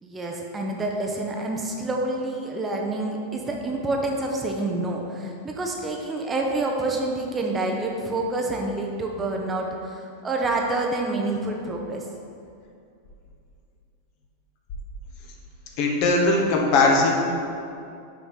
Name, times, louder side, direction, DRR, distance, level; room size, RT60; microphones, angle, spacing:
voice 1, 0.0-12.0, right 2 dB, 15° right, 0 dB, 0.8 m, -28 dB
voice 2, 15.8-17.2, left 3 dB, 45° left, 0 dB, 1.1 m, -19 dB
6.2 x 4.6 x 5.6 m, 2.5 s
figure-of-eight pair, 90°, 0 cm